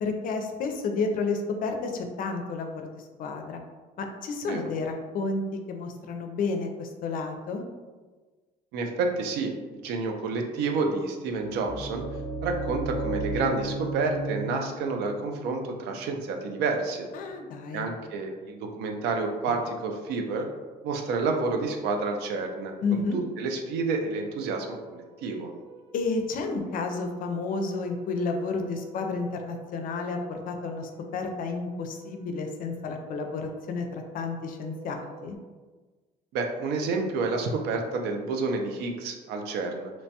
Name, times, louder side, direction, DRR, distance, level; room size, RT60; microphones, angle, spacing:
voice 1, 0.0-3.6 4.0-5.4 5.7-7.6 17.1-17.9 22.8-23.2 25.9-35.4, left 4 dB, 55° left, 4 dB, 0.4 m, -31 dB
voice 2, 8.7-12.0 12.4-17.1 17.7-20.5 20.8-25.5 36.3-39.9, right 3 dB, 90° right, 3 dB, 0.4 m, -29 dB
sound 1, 11.4-17.2, right 2 dB, 20° left, 1.0 m, -35 dB
sound 2, 23.3-35.4, right 7 dB, 40° right, 0.5 m, -50 dB
2.9 x 2.1 x 2.8 m, 1.3 s
cardioid pair, 110°, 17 cm